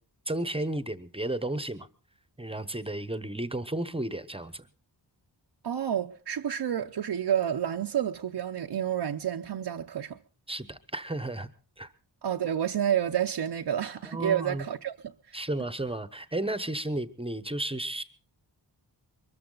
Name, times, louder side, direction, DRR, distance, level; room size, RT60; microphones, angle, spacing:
voice 1, 0.3-1.9 2.4-4.7 10.5-11.5 11.8-11.9 14.0-14.6 15.3-18.0, right 1 dB, 15° right, 0.9 m, -33 dB
voice 2, 5.6-10.2 12.2-15.4, right 9 dB, 65° right, 0.7 m, -29 dB
23.0 x 14.0 x 3.9 m
wide cardioid pair, 115°, 44 cm